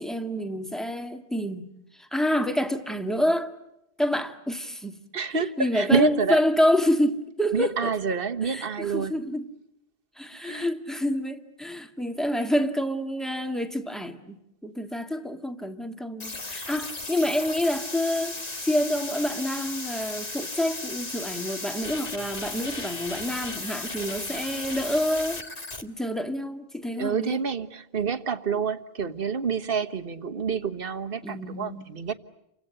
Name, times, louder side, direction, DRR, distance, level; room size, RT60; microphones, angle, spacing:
voice 1, 0.0-3.5 4.0-5.0 5.6-8.0 8.4-9.4 10.2-18.4 18.6-25.4 25.8-27.4 31.2-31.9, equal, ahead, 1.8 m, -28 dB
voice 2, 5.1-6.4 7.5-9.2 10.3-10.7 27.0-32.1, right 5 dB, 60° right, 1.5 m, -28 dB
sound 1, 16.2-25.8, left 3 dB, 40° left, 1.7 m, -35 dB
30.0 x 25.0 x 7.8 m
omnidirectional pair, 1.1 m